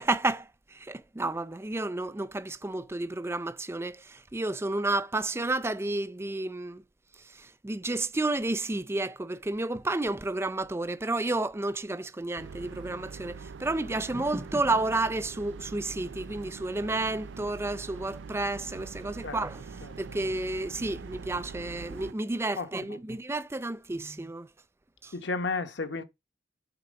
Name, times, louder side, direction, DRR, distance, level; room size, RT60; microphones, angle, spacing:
voice 1, 0.0-6.8 7.2-24.5 25.0-25.1, right 2 dB, 15° right, 0.5 m, -31 dB
sound 1, 12.4-22.1, right 5 dB, 85° right, 0.4 m, -43 dB
voice 2, 22.6-23.0 25.1-26.0, left 3 dB, 70° left, 1.0 m, -33 dB
8.9 x 4.2 x 6.2 m
head